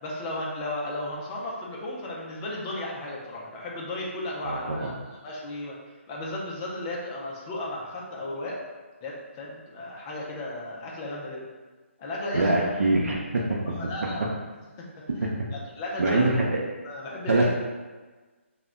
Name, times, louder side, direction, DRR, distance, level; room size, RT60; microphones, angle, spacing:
voice 1, 0.0-5.8 6.1-8.6 9.0-11.4 12.0-12.8 13.7-14.4 14.8-16.4 16.8-17.5, left 1 dB, 15° left, -4 dB, 0.4 m, -35 dB
voice 2, 4.4-4.9 12.3-13.6 15.2-15.3 16.0-16.6 17.3-17.5, right 2 dB, 90° right, -3 dB, 0.5 m, -23 dB
2.1 x 2.1 x 3.6 m, 1.3 s
hypercardioid pair, 165°, 7 cm